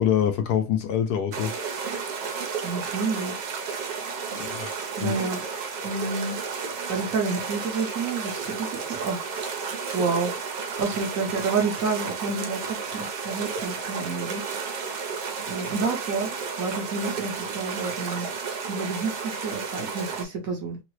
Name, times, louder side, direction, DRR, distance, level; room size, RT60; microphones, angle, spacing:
voice 1, 0.0-1.5 4.3-5.1, left 9 dB, 75° left, 1.1 m, -25 dB
sound 1, 1.3-20.3, right 5 dB, 80° right, 1.3 m, -32 dB
voice 2, 2.6-3.5 5.0-5.4 5.8-6.4 6.9-9.2 9.9-10.3 10.8-14.4 15.5-16.3 16.6-18.3 18.7-20.8, right 4 dB, 60° right, 1.1 m, -29 dB
3.8 x 2.0 x 3.0 m
omnidirectional pair, 1.9 m